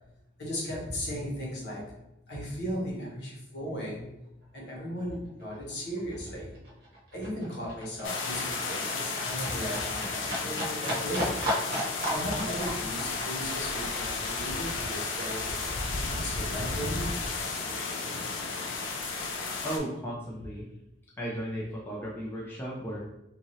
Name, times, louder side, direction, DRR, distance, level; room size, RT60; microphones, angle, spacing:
voice 1, 0.4-1.8 2.3-4.1 4.5-6.5 7.1-11.5 12.1-17.1, equal, 60° left, -4 dB, 1.0 m, -36 dB
Livestock farm animals working animals, 4.4-4.5 4.8-15.8 16.1-17.1 17.5-17.6, equal, 55° right, 0.8 m, -36 dB
sound 1, 8.0-19.8, left 4 dB, 80° left, 0.5 m, -33 dB
voice 2, 19.6-20.7 21.2-23.0, equal, 10° left, -5 dB, 0.4 m, -35 dB
3.0 x 2.5 x 2.6 m, 0.88 s
head